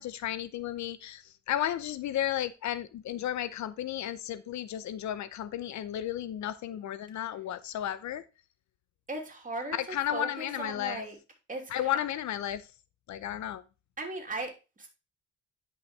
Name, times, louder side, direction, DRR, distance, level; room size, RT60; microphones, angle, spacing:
voice 1, 0.0-8.2 9.7-11.0 11.7-12.7 13.1-13.6, left 11 dB, 70° left, 0.7 m, -33 dB
voice 2, 9.1-11.2 11.5-12.0 14.0-14.9, right 2 dB, 25° right, 3.1 m, -38 dB
10.5 x 5.5 x 3.2 m
cardioid pair, 90°, 30 cm